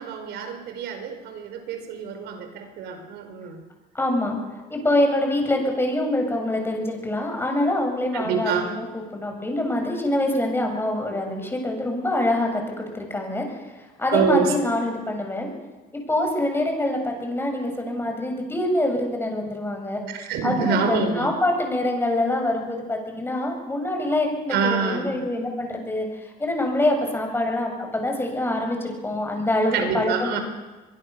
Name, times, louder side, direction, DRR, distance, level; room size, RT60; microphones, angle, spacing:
voice 1, 0.0-3.6 8.1-8.7 14.1-14.7 20.1-21.3 24.5-25.1 29.7-30.4, right 5 dB, 80° right, 7 dB, 4.9 m, -26 dB
voice 2, 3.9-4.4 4.7-13.4 14.0-15.5 15.9-20.0 20.4-26.1 26.4-30.4, left 1 dB, 15° left, 2 dB, 7.2 m, -25 dB
24.5 x 22.5 x 6.9 m, 1.2 s
cardioid pair, 110°, 17 cm